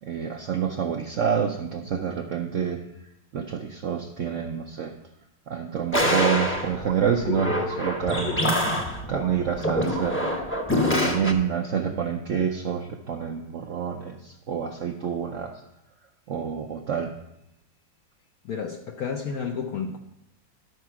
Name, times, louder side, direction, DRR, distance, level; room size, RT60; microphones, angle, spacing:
voice 1, 0.0-2.8 3.3-4.9 5.5-8.4 9.1-10.3 10.7-15.6 16.3-17.1, right 7 dB, 65° right, 3 dB, 0.7 m, -28 dB
sound 1, 5.9-11.3, left 1 dB, 10° left, 0.7 m, -25 dB
voice 2, 18.4-20.0, left 6 dB, 65° left, 3 dB, 1.0 m, -31 dB
12.0 x 4.7 x 5.8 m, 0.82 s
omnidirectional pair, 2.0 m